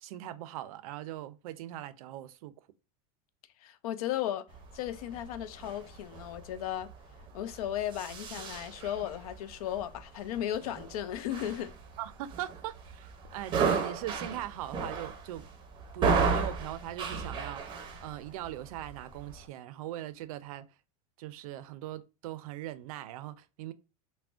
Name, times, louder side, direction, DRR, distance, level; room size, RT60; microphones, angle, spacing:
voice 1, 0.0-2.5 12.0-13.1 13.3-15.4 15.9-20.7 21.2-23.7, right 13 dB, 75° right, 0.4 m, -40 dB
voice 2, 3.6-4.5 4.7-6.9 7.3-11.7, left 11 dB, 90° left, 0.4 m, -35 dB
sound 1, 4.5-19.5, right 5 dB, 25° right, 0.6 m, -35 dB
3.5 x 2.1 x 2.4 m
supercardioid pair, 145°, 18 cm